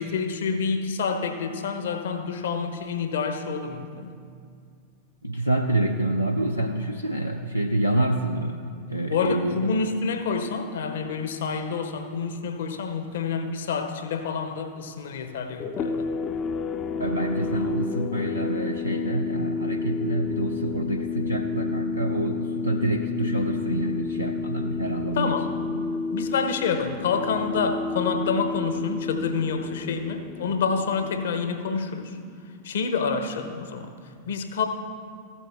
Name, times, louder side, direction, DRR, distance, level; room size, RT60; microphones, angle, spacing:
voice 1, 0.0-4.1 9.1-16.1 25.2-25.5 26.1-32.2 32.6-33.9 34.3-34.7, left 5 dB, 60° left, 7 dB, 0.9 m, -28 dB
voice 2, 5.2-8.6 8.9-9.7 17.0-25.4, right 1 dB, 90° left, 2 dB, 0.5 m, -27 dB
sound 1, 15.6-31.9, left 5 dB, 30° left, 0.4 m, -31 dB
14.0 x 8.5 x 3.5 m, 2.2 s
figure-of-eight pair, 90°, 0 cm